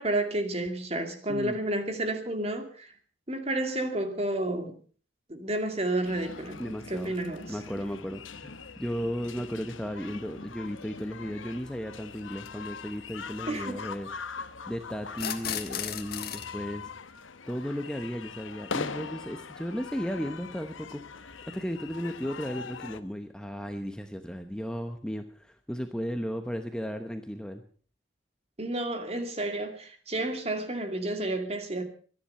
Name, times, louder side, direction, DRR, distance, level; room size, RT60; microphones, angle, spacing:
voice 1, 0.0-2.9 3.3-4.7 5.3-6.6 6.9-7.6 13.5-13.8 28.6-31.8, right 1 dB, 30° right, 2.5 m, -31 dB
sound 1, 6.0-23.0, left 5 dB, 85° left, 1.0 m, -42 dB
voice 2, 6.6-7.2 7.5-14.1 14.7-16.9 17.5-27.6, equal, 5° left, 0.9 m, -35 dB
sound 2, 10.8-10.9 12.3-12.5 15.1-16.5, left 9 dB, 50° left, 1.6 m, -35 dB
24.5 x 10.5 x 5.6 m
head